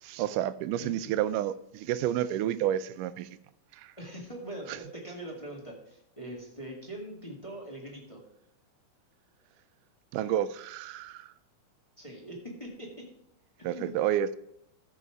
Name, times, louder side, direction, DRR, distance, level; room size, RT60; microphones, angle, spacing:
voice 1, 0.0-3.3 3.7-3.9 4.7-4.8 10.1-11.3 13.6-14.4, right 11 dB, 80° right, 14 dB, 2.1 m, -30 dB
voice 2, 4.0-8.2 12.0-13.0 13.6-14.0, right 1 dB, 15° left, -2 dB, 1.3 m, -42 dB
14.0 x 5.5 x 4.8 m, 0.76 s
omnidirectional pair, 3.8 m